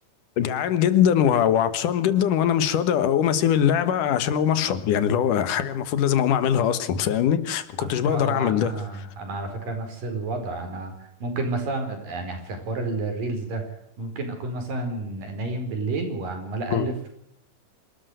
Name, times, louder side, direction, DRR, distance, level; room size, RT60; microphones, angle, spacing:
voice 1, 0.4-9.1 16.7-16.9, left 9 dB, 70° left, 2.9 m, -22 dB
voice 2, 7.8-13.6 14.0-17.1, right 2 dB, 80° right, 6.4 m, -30 dB
26.5 x 13.5 x 8.1 m
omnidirectional pair, 3.9 m